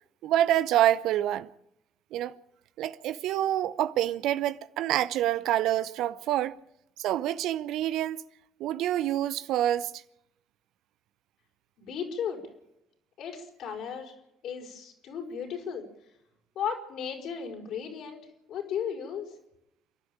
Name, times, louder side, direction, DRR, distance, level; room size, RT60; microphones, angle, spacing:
voice 1, 0.2-1.5 2.1-2.4 2.8-6.6 7.0-8.2 8.6-9.9, right 12 dB, 65° right, 0.7 m, -27 dB
voice 2, 11.8-12.4 13.2-14.1 14.4-15.8 16.6-18.2 18.5-19.3, left 7 dB, 65° left, 5.1 m, -35 dB
29.0 x 11.5 x 9.0 m
hypercardioid pair, 45°, 0 cm